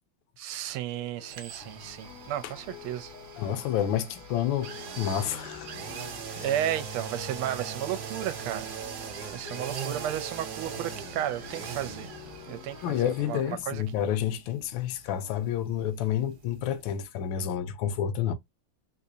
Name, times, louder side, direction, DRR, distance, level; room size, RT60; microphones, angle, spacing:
voice 1, 0.4-3.1 3.4-3.6 6.4-8.7 9.0-12.1 12.5-13.8, right 11 dB, 80° right, 1.5 m, -33 dB
sound 1, 0.9-13.1, left 11 dB, 85° left, 1.7 m, -48 dB
sound 2, 1.3-17.1 17.4-17.5, right 7 dB, 60° right, 1.1 m, -41 dB
voice 2, 3.4-5.7 6.4-6.5 12.8-18.3, left 10 dB, 70° left, 1.2 m, -29 dB
3.8 x 2.8 x 2.6 m
omnidirectional pair, 2.4 m